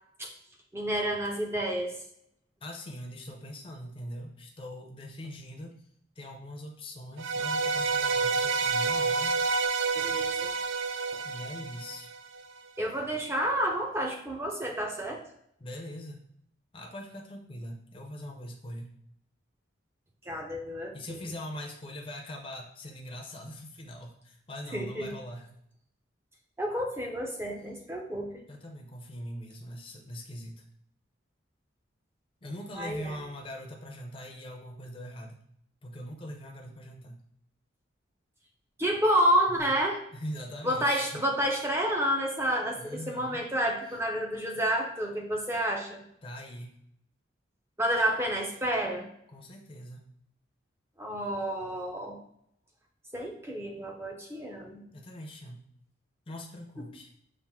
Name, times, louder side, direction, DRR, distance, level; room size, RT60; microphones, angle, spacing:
voice 1, 0.7-2.0 9.9-10.5 12.8-15.2 20.3-21.2 24.7-25.1 26.6-28.3 32.8-33.2 38.8-40.0 40.6-46.0 47.8-49.1 51.0-52.2 53.1-54.8, equal, 15° right, 0 dB, 0.6 m, -29 dB
voice 2, 2.6-5.8 6.2-9.4 11.2-12.1 15.6-16.3 16.7-18.9 20.9-25.5 28.5-30.6 32.4-35.4 35.8-37.2 40.1-41.2 42.8-43.4 46.2-46.8 49.3-50.1 54.9-55.6 56.3-57.1, equal, 25° left, 1 dB, 0.6 m, -42 dB
sound 1, 7.2-12.4, right 4 dB, 75° right, 0.3 m, -29 dB
5.6 x 2.6 x 3.6 m, 0.71 s
head